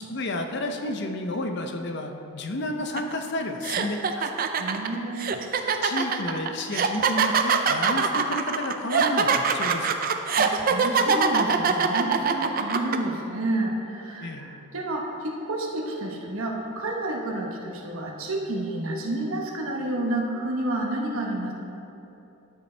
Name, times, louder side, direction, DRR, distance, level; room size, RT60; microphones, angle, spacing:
voice 1, 0.1-4.3 5.8-10.0 14.2-14.5, left 2 dB, 55° left, 5 dB, 0.6 m, -31 dB
Laughing in a Mic, 3.0-3.1 3.6-13.0, right 6 dB, 40° right, 0.4 m, -23 dB
voice 2, 4.6-5.4 10.4-21.5, right 1 dB, 80° right, 0 dB, 1.0 m, -30 dB
12.5 x 6.8 x 3.3 m, 2.9 s
head